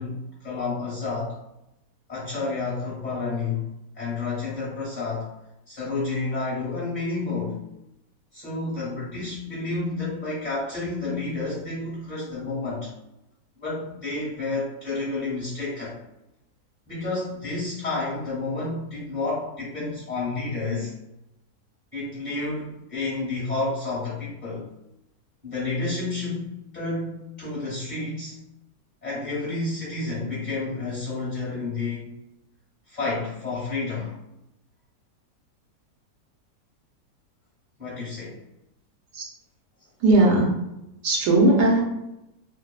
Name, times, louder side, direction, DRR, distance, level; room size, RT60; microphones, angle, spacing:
voice 1, 0.0-1.4 2.1-3.7 3.9-5.3 5.7-7.6 8.3-12.9 13.6-16.0 16.9-20.9 21.9-24.7 25.4-28.4 29.0-32.1 32.9-34.2 37.8-38.4, left 3 dB, 30° left, -8 dB, 1.1 m, -30 dB
voice 2, 40.0-40.6 41.0-41.8, right 2 dB, 85° right, -1 dB, 1.3 m, -18 dB
3.0 x 2.0 x 2.2 m, 0.88 s
omnidirectional pair, 1.7 m